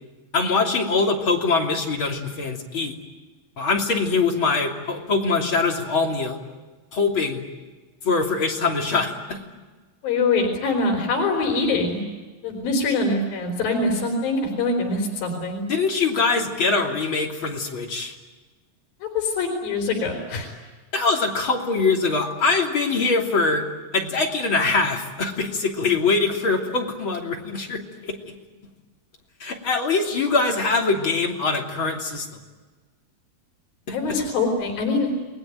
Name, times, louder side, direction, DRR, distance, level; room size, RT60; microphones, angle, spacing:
voice 1, 0.3-2.9 3.6-6.4 6.9-7.4 8.0-9.4 15.7-18.2 20.9-23.6 23.9-28.2 29.4-32.4 33.9-34.2, left 4 dB, 35° left, 0 dB, 3.6 m, -23 dB
voice 2, 10.0-12.0 12.4-15.6 19.0-20.5 30.1-30.2 33.9-35.1, left 3 dB, 80° left, 2 dB, 5.5 m, -24 dB
29.5 x 20.5 x 9.1 m, 1.3 s
omnidirectional pair, 4.1 m